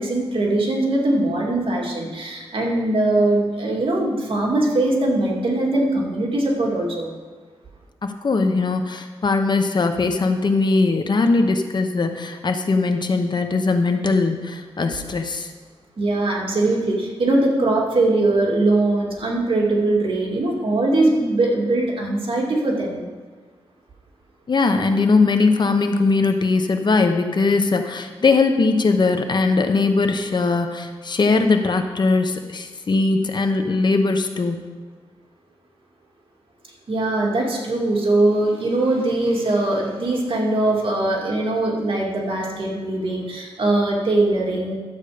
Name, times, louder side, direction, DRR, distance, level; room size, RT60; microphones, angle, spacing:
voice 1, 0.0-7.1 16.0-23.1 36.9-44.7, right 2 dB, 60° right, -2 dB, 2.4 m, -21 dB
voice 2, 8.0-15.5 24.5-34.6, left 3 dB, 45° left, 6 dB, 0.9 m, -20 dB
12.5 x 8.1 x 5.1 m, 1.4 s
wide cardioid pair, 105°, 10 cm